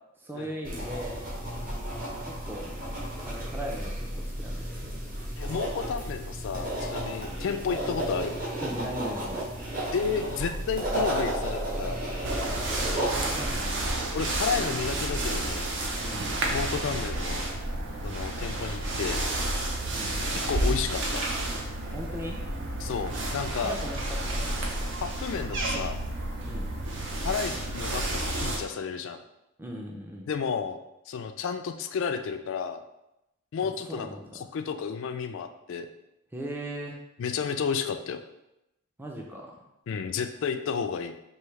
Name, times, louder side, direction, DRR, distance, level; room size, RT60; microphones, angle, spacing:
voice 1, 0.2-1.2 2.2-2.7 3.3-4.8 8.6-9.5 13.1-13.9 16.0-16.3 19.9-20.2 21.9-22.4 23.6-24.5 26.4-26.7 29.6-30.3 33.6-34.2 36.3-37.0 39.0-39.5, right 1 dB, 10° right, -1 dB, 0.4 m, -38 dB
sound 1, 0.6-13.6, right 1 dB, 40° right, 1.2 m, -33 dB
voice 2, 5.4-8.4 9.9-12.0 14.1-15.7 16.5-17.4 18.0-19.2 20.3-21.2 22.8-23.8 25.0-26.0 27.2-29.2 30.3-30.8 31.1-32.8 33.5-34.1 34.3-35.9 37.2-38.2 39.9-41.1, left 6 dB, 60° left, 7 dB, 0.3 m, -32 dB
sound 2, 12.2-28.6, right 1 dB, 55° right, 0.6 m, -30 dB
4.6 x 2.7 x 3.2 m, 0.89 s
head